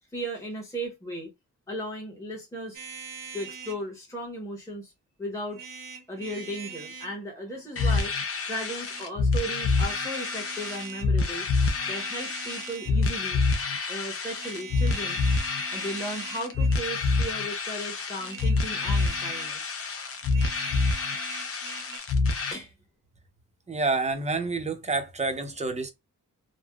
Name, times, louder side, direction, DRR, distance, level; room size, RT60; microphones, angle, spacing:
voice 1, 0.1-1.3 1.7-2.8 3.3-4.9 5.2-5.6 6.1-8.2 8.5-11.5 11.8-13.4 13.9-15.2 15.7-19.8 22.5-22.7, equal, 10° left, 1.0 m, -36 dB
sound 1, 2.7-3.8 5.5-7.1 8.7-9.1 9.7-11.1 11.7-13.1 14.4-16.8 18.2-19.6 20.2-22.0, right 6 dB, 80° right, 0.9 m, -42 dB
sound 2, 7.8-22.5, left 3 dB, 45° left, 0.6 m, -27 dB
voice 2, 23.7-25.9, right 3 dB, 20° right, 0.6 m, -28 dB
3.4 x 2.0 x 2.3 m
wide cardioid pair, 115°, 33 cm